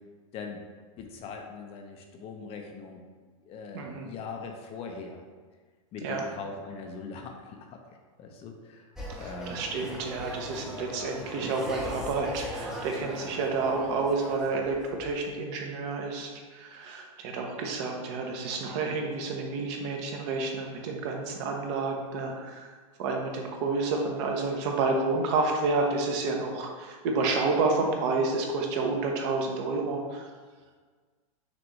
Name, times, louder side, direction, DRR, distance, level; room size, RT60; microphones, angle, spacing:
voice 1, 1.0-3.0 3.4-5.2 5.9-8.9 9.1-9.6, left 4 dB, 35° left, 3 dB, 0.6 m, -41 dB
voice 2, 3.7-4.1 6.0-6.2 9.1-22.7 23.0-30.3, right 3 dB, 50° right, 1 dB, 0.9 m, -30 dB
sound 1, 9.0-15.1, equal, 5° right, 0.7 m, -39 dB
6.0 x 2.6 x 3.1 m, 1.5 s
hypercardioid pair, 120°, 18 cm